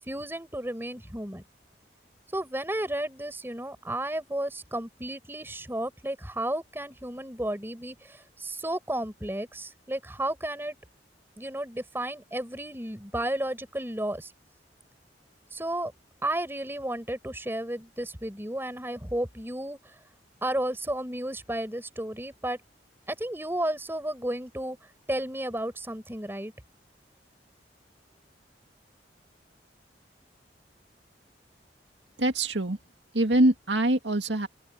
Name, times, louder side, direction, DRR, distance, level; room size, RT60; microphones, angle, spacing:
voice 1, 0.0-1.4 2.3-10.8 11.4-14.3 15.5-15.9 16.2-19.8 20.4-22.6 23.1-24.8 25.1-26.5, right 1 dB, 15° right, 4.5 m, -33 dB
voice 2, 32.2-32.8 33.1-34.5, right 1 dB, 90° right, 2.2 m, -24 dB
open air
head